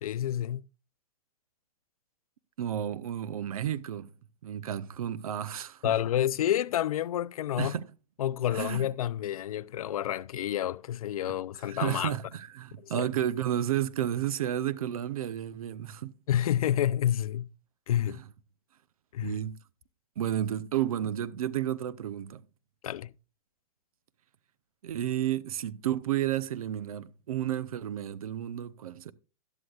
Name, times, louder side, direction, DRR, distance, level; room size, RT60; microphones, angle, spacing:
voice 1, 0.0-0.6 5.8-7.7 8.2-12.2 12.8-13.1 16.3-17.5 17.9-18.2 19.1-19.4 22.8-23.1, left 11 dB, 75° left, 0.5 m, -29 dB
voice 2, 2.6-4.1 4.4-6.0 7.6-7.9 8.5-8.9 11.7-16.1 18.1-18.2 19.2-19.6 20.2-22.4 24.8-29.1, right 11 dB, 75° right, 0.7 m, -32 dB
12.5 x 11.5 x 2.4 m
hypercardioid pair, 130°, 18 cm